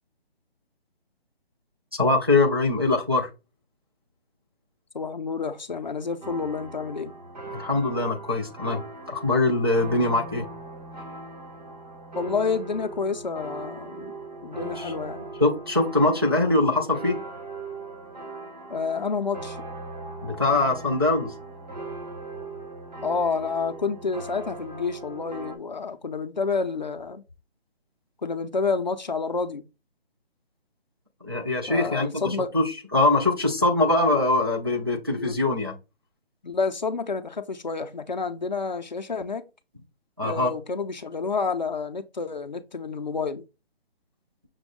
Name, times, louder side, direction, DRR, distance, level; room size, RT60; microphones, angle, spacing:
voice 1, 1.9-3.3 7.5-10.5 14.8-14.9 15.4-17.2 20.2-21.3 31.2-35.7 40.2-40.5, left 2 dB, 25° right, 0.4 m, -23 dB
voice 2, 4.9-7.1 12.2-14.1 14.4-15.2 18.7-19.6 23.0-27.2 28.2-29.6 31.7-32.5 35.2-35.4 36.4-39.4 40.2-43.4, left 4 dB, 45° left, 0.5 m, -29 dB
sound 1, 6.2-25.6, right 2 dB, 45° right, 1.1 m, -39 dB
6.0 x 2.2 x 3.5 m
hypercardioid pair, 175°, 31 cm